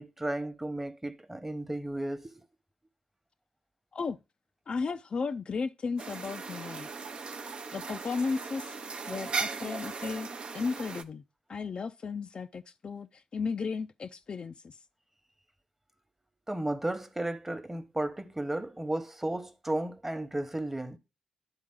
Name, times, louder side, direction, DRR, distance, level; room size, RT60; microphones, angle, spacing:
voice 1, 0.0-2.3 7.1-7.2 16.5-21.0, right 1 dB, 15° right, 1.0 m, -34 dB
voice 2, 4.7-6.9 7.7-8.8 9.1-10.3 10.5-11.2 11.5-14.7, left 5 dB, 50° left, 0.4 m, -34 dB
sound 1, 6.0-11.0, right 4 dB, 50° right, 0.6 m, -38 dB
10.5 x 3.8 x 3.7 m
hypercardioid pair, 45°, 2 cm